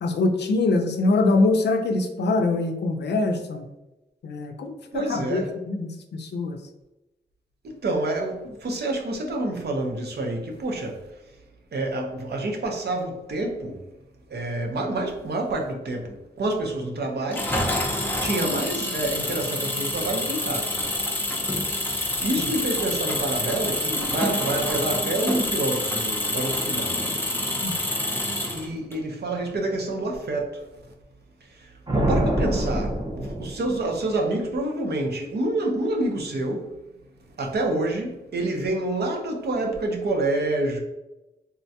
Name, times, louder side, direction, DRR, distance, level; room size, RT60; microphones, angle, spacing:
voice 1, 0.0-3.7 4.2-6.6 22.3-22.5 27.6-27.7, left 3 dB, 75° left, 0.4 m, -24 dB
voice 2, 4.9-5.5 7.6-11.1 11.7-13.8 14.3-17.5 18.2-20.8 21.8-27.2 28.4-30.7 31.4-36.7 37.4-40.8, right 2 dB, 70° right, 0.6 m, -28 dB
Engine, 17.3-28.9, left 1 dB, 10° left, 0.5 m, -27 dB
sound 1, 31.9-34.1, right 1 dB, 25° right, 0.7 m, -25 dB
3.6 x 2.2 x 2.7 m
wide cardioid pair, 100°, 18 cm